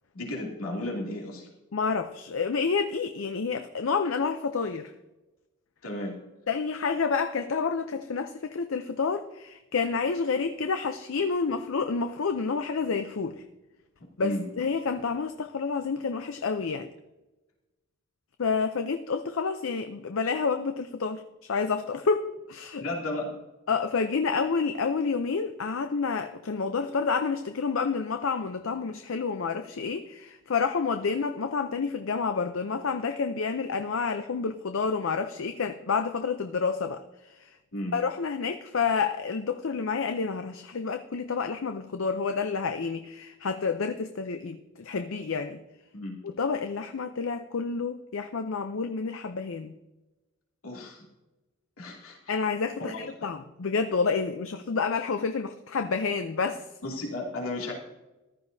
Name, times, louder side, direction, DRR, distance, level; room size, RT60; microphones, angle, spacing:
voice 1, 0.1-1.5 5.8-6.1 14.2-14.4 22.8-23.3 37.7-38.0 45.9-46.2 50.6-51.0 51.8-52.3 52.8-52.9 56.8-57.7, left 1 dB, 90° left, -2 dB, 2.6 m, -34 dB
voice 2, 1.7-4.9 6.5-13.4 14.2-16.9 18.4-21.2 21.5-22.8 23.7-37.5 37.9-45.6 46.2-49.7 52.3-56.7, left 5 dB, 70° left, 8 dB, 0.5 m, -29 dB
14.5 x 12.0 x 2.7 m, 1.0 s
head